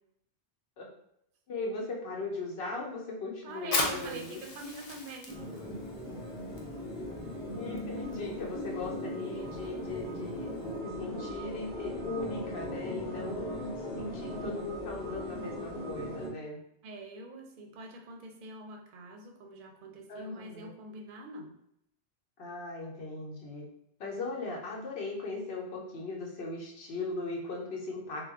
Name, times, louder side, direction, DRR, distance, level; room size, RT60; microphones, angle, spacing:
voice 1, 1.5-4.4 7.5-10.5 10.8-13.7 14.0-16.6 20.1-20.7 22.4-23.6 24.0-28.3, left 3 dB, 80° left, -1 dB, 0.9 m, -38 dB
voice 2, 3.4-5.4 6.0-6.1 16.8-21.6, right 2 dB, 60° right, 2 dB, 0.6 m, -44 dB
Fire, 3.6-10.8, left 2 dB, 50° left, 0.4 m, -39 dB
sound 1, 5.3-16.3, equal, 5° left, 0.7 m, -39 dB
2.3 x 2.1 x 3.4 m, 0.76 s
omnidirectional pair, 1.0 m